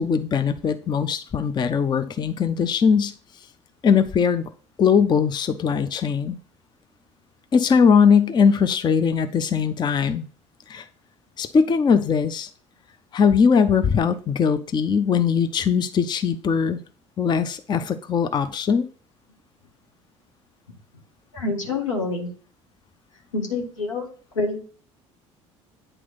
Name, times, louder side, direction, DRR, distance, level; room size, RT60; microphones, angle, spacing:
voice 1, 0.0-3.1 3.8-4.5 4.8-6.4 7.5-10.3 10.7-10.9 11.4-12.5 13.1-16.8 17.2-18.9, left 6 dB, 30° left, 10 dB, 0.5 m, -20 dB
voice 2, 21.3-22.3 23.3-24.1 24.3-24.6, left 3 dB, 85° left, 1 dB, 1.2 m, -26 dB
8.8 x 3.1 x 3.9 m, 0.40 s
figure-of-eight pair, 60°, 16 cm